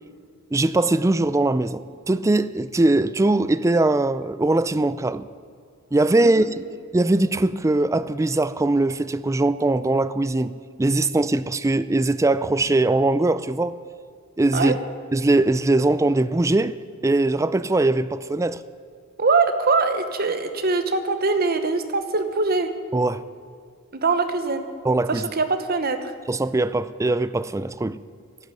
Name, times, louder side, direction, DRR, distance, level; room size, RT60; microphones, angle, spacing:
voice 1, 0.5-5.3 5.9-6.5 6.9-13.8 14.4-14.8 15.1-16.8 17.0-18.6 22.9-23.2 24.8-25.2 26.3-28.0, right 2 dB, 15° right, 0.4 m, -21 dB
voice 2, 19.2-22.7 23.9-24.7 25.1-26.1, right 4 dB, 45° right, 1.1 m, -22 dB
11.5 x 9.1 x 9.4 m
head